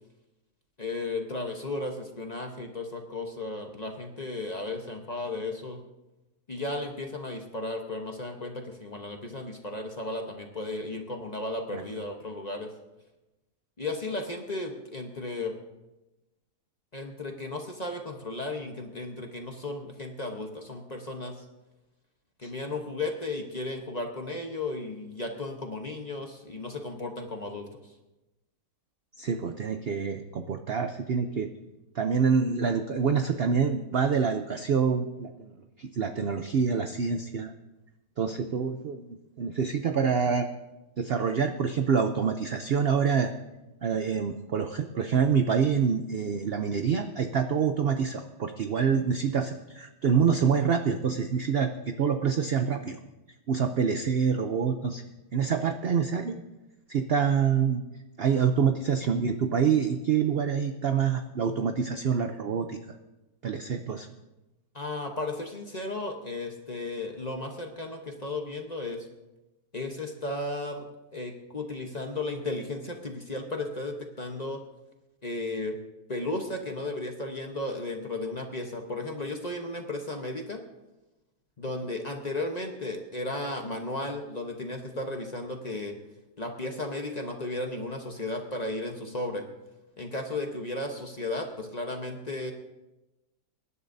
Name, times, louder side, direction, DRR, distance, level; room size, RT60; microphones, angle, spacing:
voice 1, 0.8-5.8 6.5-12.7 13.8-15.5 16.9-21.4 22.4-27.7 64.7-69.1 69.7-70.9 71.1-74.6 75.2-75.8 76.1-80.6 81.6-85.9 86.4-89.4 90.0-92.5, left 2 dB, 30° left, 3 dB, 0.9 m, -34 dB
voice 2, 29.2-31.5 31.9-35.5 35.8-37.5 38.2-40.5 41.0-43.3 43.8-53.0 53.5-55.0 55.3-56.4 56.9-57.8 58.2-62.8 63.4-64.1, right 6 dB, 65° right, 7 dB, 0.6 m, -26 dB
24.0 x 11.0 x 2.7 m, 1.0 s
omnidirectional pair, 1.8 m